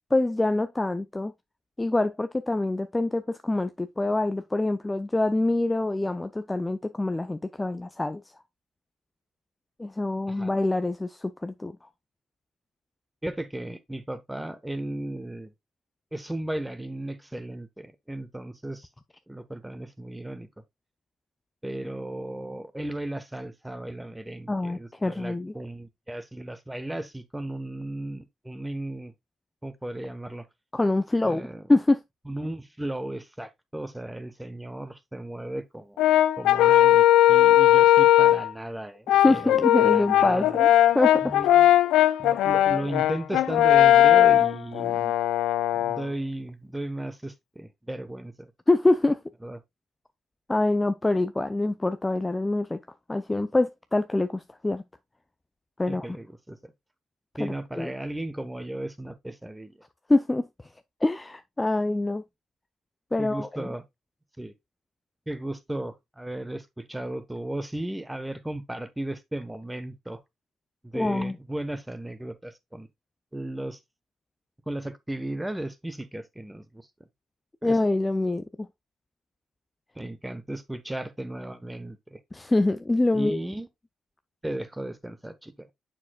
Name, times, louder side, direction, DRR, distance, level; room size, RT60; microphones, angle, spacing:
voice 1, 0.1-1.3 1.8-8.2 9.8-11.8 24.5-25.5 30.7-31.4 31.7-32.0 39.1-40.7 40.9-41.3 48.7-49.2 50.5-52.8 53.1-54.8 55.8-56.1 57.4-57.9 60.1-60.5 61.0-62.2 63.1-63.6 70.9-71.4 77.6-78.7 82.3-83.4, left 2 dB, 15° left, 0.5 m, -25 dB
voice 2, 13.2-15.5 16.1-18.9 19.3-20.5 21.6-29.1 29.6-30.5 31.2-31.7 32.3-36.0 36.4-40.6 41.2-41.7 42.2-45.1 45.7-48.5 49.4-49.6 55.9-56.7 57.4-59.7 63.2-63.8 64.4-64.5 65.3-70.2 70.8-72.9 73.3-73.8 74.7-76.9 77.6-77.8 79.9-82.2 83.1-83.7 84.4-85.7, right 1 dB, 10° right, 1.1 m, -35 dB
Brass instrument, 36.0-38.5 39.1-46.0, left 13 dB, 90° left, 0.4 m, -19 dB
7.2 x 6.5 x 2.3 m
cardioid pair, 90°, 0 cm